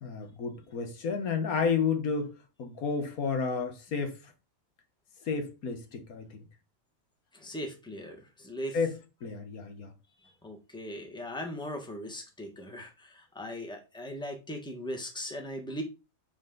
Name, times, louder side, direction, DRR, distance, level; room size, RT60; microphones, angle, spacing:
voice 1, 0.0-4.3 5.2-6.4 8.7-8.9 9.2-9.9, left 5 dB, 80° left, 1.7 m, -31 dB
voice 2, 7.3-8.8 10.2-15.8, equal, 5° left, 1.4 m, -39 dB
8.1 x 4.4 x 3.8 m
omnidirectional pair, 1.5 m